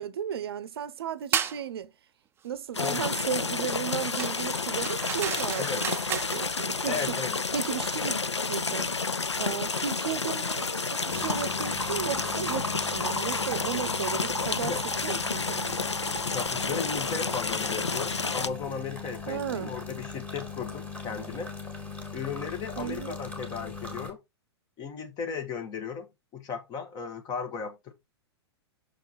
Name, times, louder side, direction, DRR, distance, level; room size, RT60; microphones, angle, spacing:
voice 1, 0.0-1.9 2.4-7.2 7.5-8.2 8.5-14.8 15.0-15.7 19.3-19.7 22.8-23.2, right 9 dB, 60° right, 0.7 m, -35 dB
sound 1, 1.3-1.6 4.2-6.5, right 8 dB, 15° right, 0.5 m, -32 dB
sound 2, 2.7-18.5, left 4 dB, 90° left, 0.5 m, -30 dB
voice 2, 2.8-3.2 5.6-5.9 6.9-7.4 14.6-14.8 16.2-21.5 22.1-24.2 24.8-27.9, left 6 dB, 30° left, 1.8 m, -36 dB
sound 3, 11.1-24.1, left 2 dB, 10° left, 2.3 m, -38 dB
6.6 x 4.5 x 4.2 m
figure-of-eight pair, 105°, 14 cm